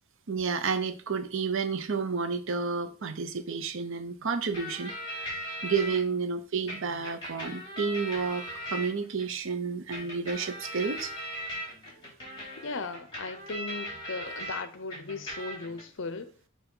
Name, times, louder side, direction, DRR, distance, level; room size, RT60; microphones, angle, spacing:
voice 1, 0.3-5.3 5.6-11.1, right 5 dB, 60° right, 0.7 m, -31 dB
sound 1, 4.5-6.0 6.7-9.3 9.9-14.6 14.9-15.8, equal, 20° left, 3.4 m, -39 dB
voice 2, 12.6-16.3, left 3 dB, 60° left, 0.7 m, -37 dB
6.9 x 2.9 x 5.4 m
head